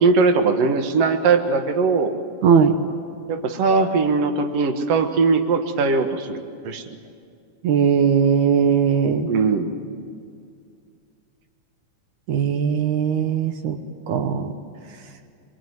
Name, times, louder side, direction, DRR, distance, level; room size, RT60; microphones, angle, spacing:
voice 1, 0.0-2.1 3.3-6.4 6.6-6.8 9.2-9.8, right 4 dB, 60° right, 6 dB, 2.4 m, -20 dB
voice 2, 2.4-2.8 7.6-9.3 12.3-13.8 14.1-14.5, right 7 dB, 80° right, 6 dB, 2.5 m, -19 dB
25.0 x 23.0 x 9.4 m, 2.3 s
omnidirectional pair, 3.4 m